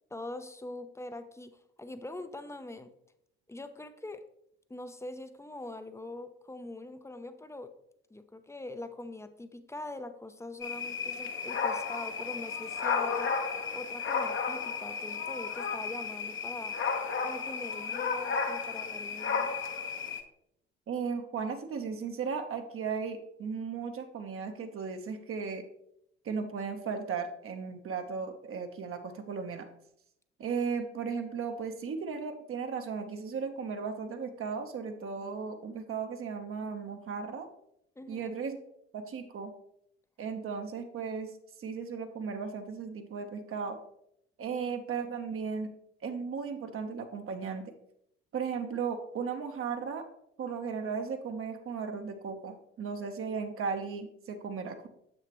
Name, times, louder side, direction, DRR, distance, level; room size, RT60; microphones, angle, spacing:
voice 1, 0.1-2.9 3.5-4.3 4.7-7.7 8.1-13.4 13.7-16.8 17.2-19.6 38.0-38.3, left 2 dB, 10° left, 10 dB, 0.6 m, -43 dB
sound 1, 10.6-20.2, left 5 dB, 40° left, 0.9 m, -33 dB
voice 2, 20.9-25.6 26.2-29.7 30.4-37.5 38.1-38.6 38.9-39.5 40.2-41.3 41.6-43.8 44.4-45.7 46.0-47.7 48.3-50.1 50.4-54.9, right 5 dB, 45° right, 6 dB, 0.9 m, -36 dB
7.5 x 6.2 x 3.0 m, 0.76 s
figure-of-eight pair, 50°, 32 cm